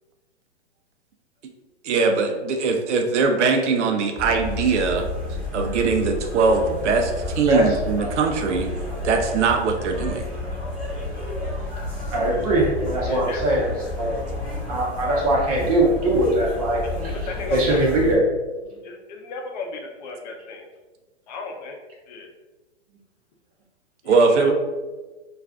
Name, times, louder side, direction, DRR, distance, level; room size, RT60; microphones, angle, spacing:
voice 1, 1.8-5.1 5.5-8.7 9.0-10.3 24.1-24.6, right 4 dB, 80° right, 4 dB, 0.5 m, -21 dB
sound 1, 4.2-18.2, left 2 dB, 5° left, 1.0 m, -31 dB
voice 2, 7.5-8.1 12.1-13.7 14.0-14.1 14.7-18.2, right 1 dB, 35° right, -2 dB, 0.5 m, -21 dB
voice 3, 13.1-13.6 17.3-17.8 18.8-20.7 21.3-21.8 22.1-22.3 24.0-24.6, left 4 dB, 40° left, 2 dB, 0.6 m, -34 dB
2.5 x 2.3 x 3.3 m, 1.2 s
hypercardioid pair, 140°, 35 cm